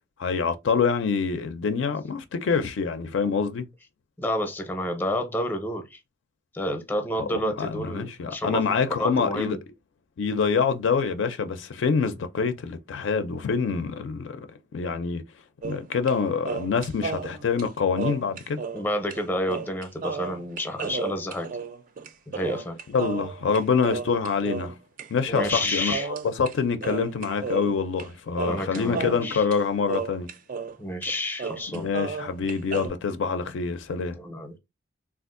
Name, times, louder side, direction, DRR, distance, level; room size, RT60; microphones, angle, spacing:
voice 1, 0.2-3.6 7.2-9.6 10.2-14.4 14.7-15.2 15.6-18.6 22.9-24.8 25.1-30.3 31.7-34.2, left 5 dB, 70° left, 0.4 m, -26 dB
voice 2, 4.2-6.0 6.5-8.6 8.9-9.6 18.7-21.5 22.3-22.8 25.3-26.1 28.4-29.4 30.8-31.9 34.2-34.6, equal, 10° left, 0.5 m, -29 dB
sound 1, 15.6-16.2 16.4-18.8 19.1-19.2 19.5-25.1 25.3-26.5 26.8-28.1 28.4-30.8 31.0-31.1 31.4-32.9, right 5 dB, 45° right, 0.3 m, -33 dB
3.4 x 2.4 x 2.5 m
head